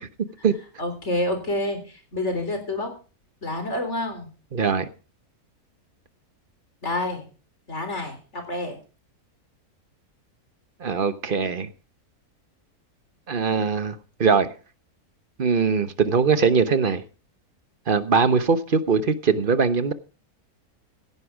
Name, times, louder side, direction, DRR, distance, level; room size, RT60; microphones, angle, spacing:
voice 1, 0.8-2.9 3.4-4.3 6.8-7.3 7.7-8.8, left 1 dB, 50° left, 4.0 m, -28 dB
voice 2, 4.5-4.9 10.8-11.7 13.3-14.5 15.4-17.0 17.9-19.9, right 5 dB, 40° right, 1.0 m, -21 dB
16.5 x 10.0 x 4.9 m
omnidirectional pair, 1.6 m